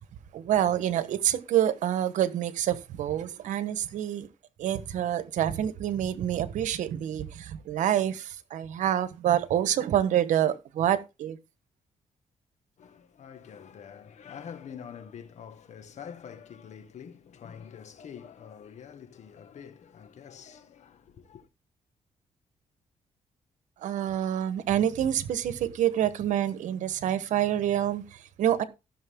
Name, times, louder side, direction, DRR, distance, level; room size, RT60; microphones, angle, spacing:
voice 1, 0.3-4.3 4.6-11.4 23.8-28.6, right 11 dB, 90° right, 1.1 m, -27 dB
voice 2, 12.8-21.5, left 7 dB, 70° left, 1.7 m, -46 dB
14.5 x 6.5 x 3.7 m
cardioid pair, 80°, 13 cm